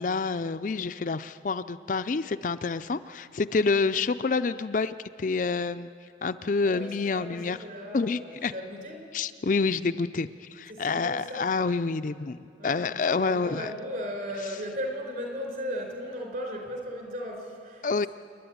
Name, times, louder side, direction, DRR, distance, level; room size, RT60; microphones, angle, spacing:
voice 1, 0.0-5.9 6.2-7.6 7.9-8.5 9.1-13.7 17.8-18.1, left 4 dB, 45° left, 11 dB, 0.4 m, -28 dB
voice 2, 3.5-3.8 6.6-9.1 10.7-11.4 12.6-18.1, equal, 50° right, 2 dB, 4.5 m, -37 dB
29.0 x 10.5 x 9.4 m, 2.3 s
head